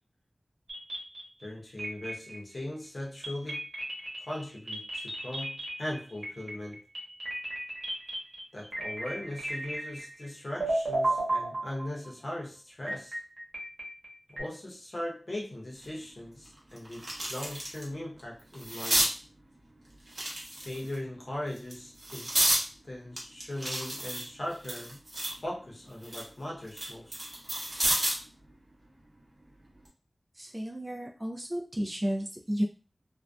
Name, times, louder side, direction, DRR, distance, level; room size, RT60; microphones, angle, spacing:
sound 1, 0.7-1.5 1.8-2.6 3.2-10.3 10.6-12.1 12.9-14.4, right 1 dB, 70° right, 1.0 m, -34 dB
voice 1, 1.4-3.6 4.3-6.8 8.5-13.2 14.3-19.1 20.6-22.3 22.8-25.0 25.4-27.2, left 1 dB, 55° left, -3 dB, 0.7 m, -39 dB
sound 2, 15.8-15.9 16.4-17.8 18.2-19.1 20.1-20.9 21.5-22.6 23.2-25.4 25.8-28.3 29.6-29.9, right 1 dB, 50° right, 0.8 m, -31 dB
voice 2, 30.4-32.6, equal, 20° right, 0 dB, 0.4 m, -32 dB
2.5 x 2.1 x 2.3 m, 0.36 s
wide cardioid pair, 70°, 0 cm